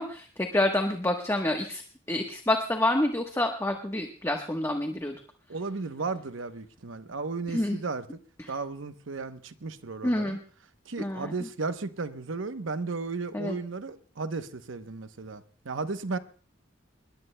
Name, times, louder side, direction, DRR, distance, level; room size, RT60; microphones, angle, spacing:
voice 1, 0.0-1.8 2.1-5.2 7.5-7.8 8.4-8.5 10.0-10.4 11.0-11.3 13.3-13.6, left 1 dB, 15° left, 1.1 m, -28 dB
voice 2, 5.5-8.1 8.5-10.4 10.9-16.2, right 3 dB, 75° right, 0.9 m, -34 dB
25.5 x 21.0 x 2.2 m
head